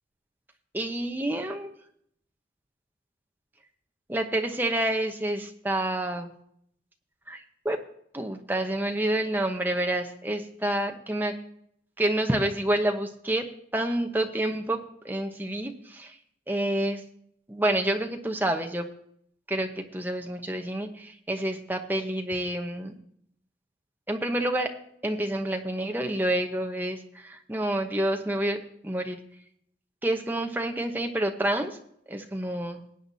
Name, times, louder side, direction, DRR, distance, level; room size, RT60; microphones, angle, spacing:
voice 1, 0.7-1.7 4.1-6.3 7.3-7.8 8.1-11.4 12.0-13.4 13.7-14.8 15.0-16.2 16.5-17.0 17.5-18.9 19.5-22.9 24.1-24.7 25.0-28.6 28.8-29.2 30.0-31.8 32.1-32.8, right 1 dB, 10° right, 4 dB, 1.0 m, -28 dB
19.5 x 8.8 x 2.8 m, 0.68 s
head